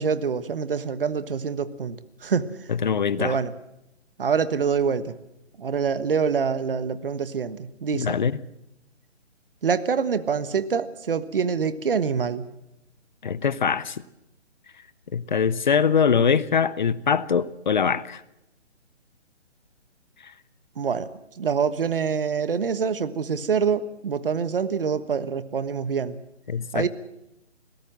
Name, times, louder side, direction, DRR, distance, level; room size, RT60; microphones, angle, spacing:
voice 1, 0.0-2.5 3.2-3.5 4.2-5.1 5.6-8.2 9.6-12.4 20.8-21.1 21.4-26.2 26.7-26.9, right 6 dB, 50° right, 1.4 m, -25 dB
voice 2, 2.7-3.4 7.9-8.4 13.2-14.0 15.1-18.2 20.2-20.3 26.5-26.9, left 6 dB, 40° left, 0.7 m, -23 dB
22.0 x 17.5 x 7.5 m
figure-of-eight pair, 140°, 35 cm